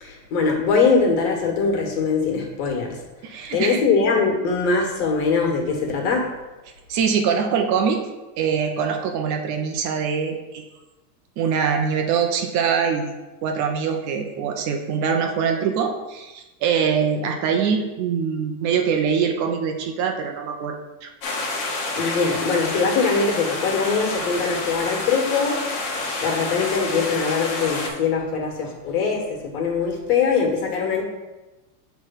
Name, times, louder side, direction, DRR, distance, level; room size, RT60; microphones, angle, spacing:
voice 1, 0.0-3.0 3.5-6.3 22.0-25.6 26.2-31.0, left 5 dB, 65° left, 1 dB, 2.1 m, -22 dB
voice 2, 3.2-3.8 6.9-8.0 8.4-10.6 11.4-13.1 13.4-21.1, right 6 dB, 35° right, 4 dB, 0.7 m, -23 dB
sound 1, 21.2-27.9, left 3 dB, 45° left, 1.5 m, -28 dB
6.5 x 3.4 x 5.8 m, 1.1 s
supercardioid pair, 145°, 49 cm